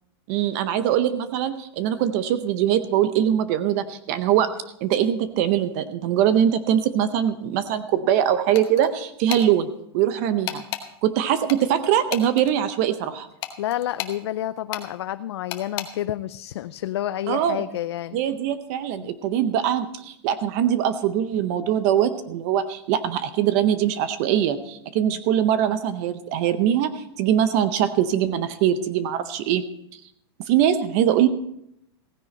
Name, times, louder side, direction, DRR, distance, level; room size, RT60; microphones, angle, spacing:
voice 1, 0.3-4.5 4.8-9.7 9.9-10.6 11.0-13.3 17.3-17.6 18.1-29.6 30.5-31.3, right 10 dB, 35° right, 12 dB, 0.6 m, -22 dB
sound 1, 8.5-8.9 9.3-9.5 10.5-10.9 11.5-12.5 13.4-14.2 14.7-14.9 15.5-15.9, left 12 dB, 30° left, 0.9 m, -32 dB
voice 2, 13.6-18.2 18.9-19.2 25.0-25.2, left 13 dB, 80° left, 12 dB, 0.4 m, -29 dB
15.5 x 9.8 x 4.3 m, 0.77 s
supercardioid pair, 170°, 14 cm